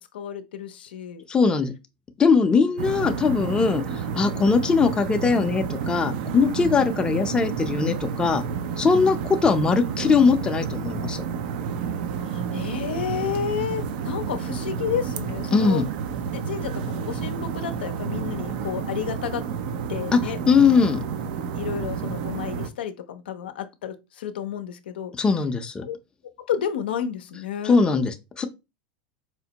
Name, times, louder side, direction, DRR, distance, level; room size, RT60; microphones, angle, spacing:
voice 1, 0.1-1.2 3.6-3.7 6.5-6.8 8.9-9.2 12.2-15.8 16.3-19.4 19.9-20.4 20.7-20.9 21.5-25.1 25.8-26.0 26.5-27.8, left 8 dB, 85° left, 0.5 m, -31 dB
voice 2, 1.3-1.7 2.2-8.4 8.8-9.2 9.4-11.2 15.5-15.9 20.1-20.2 20.5-21.0 25.2-25.8 27.6-28.5, left 5 dB, 15° left, 0.5 m, -20 dB
sound 1, 2.8-22.7, right 6 dB, 65° right, 0.5 m, -30 dB
4.3 x 2.1 x 2.8 m
supercardioid pair, 120°, 5 cm